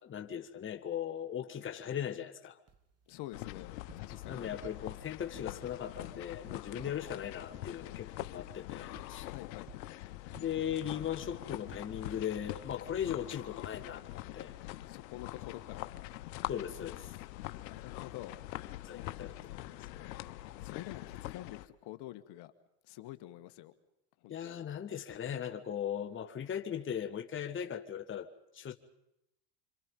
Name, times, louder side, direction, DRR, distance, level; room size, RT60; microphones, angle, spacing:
voice 1, 0.0-2.6 4.1-9.3 10.4-14.5 16.5-17.2 18.8-20.1 24.3-28.7, left 9 dB, 25° left, 1.5 m, -39 dB
sound 1, 2.7-13.5, right 6 dB, 30° right, 1.7 m, -60 dB
voice 2, 3.1-4.5 9.2-9.7 14.9-15.9 17.7-18.4 18.9-19.4 20.6-22.5 22.9-23.7 24.2-24.6, left 15 dB, 50° left, 1.8 m, -47 dB
sound 2, 3.3-21.7, left 16 dB, 80° left, 1.2 m, -44 dB
26.5 x 26.5 x 5.5 m
supercardioid pair, 110°, 49 cm